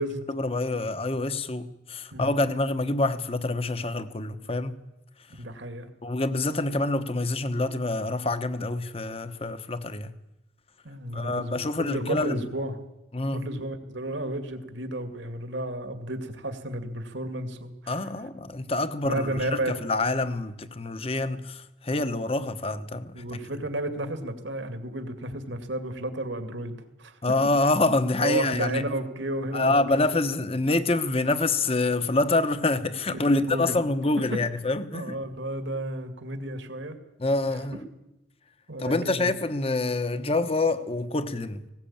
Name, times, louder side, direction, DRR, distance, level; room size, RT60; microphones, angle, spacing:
voice 1, 0.3-4.8 6.0-10.1 11.1-12.4 13.1-13.4 17.9-23.2 27.2-28.8 29.5-35.2 37.2-37.8 38.8-41.6, left 2 dB, 30° left, 1.1 m, -26 dB
voice 2, 5.4-5.9 10.8-12.8 13.3-17.7 19.0-19.7 23.1-27.2 28.1-30.0 33.1-33.8 34.9-37.0 37.5-37.6 38.7-39.3, right 1 dB, 70° right, 2.3 m, -32 dB
19.5 x 18.0 x 8.8 m
head